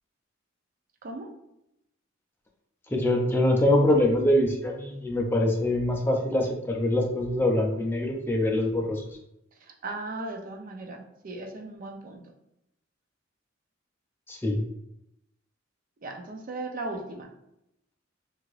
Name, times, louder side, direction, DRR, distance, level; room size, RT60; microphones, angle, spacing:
voice 1, 2.9-9.0 14.3-14.6, left 1 dB, 10° left, 1 dB, 0.4 m, -24 dB
voice 2, 9.6-12.2 16.0-17.3, right 2 dB, 45° right, 3 dB, 0.5 m, -37 dB
2.8 x 2.5 x 3.1 m, 0.83 s
head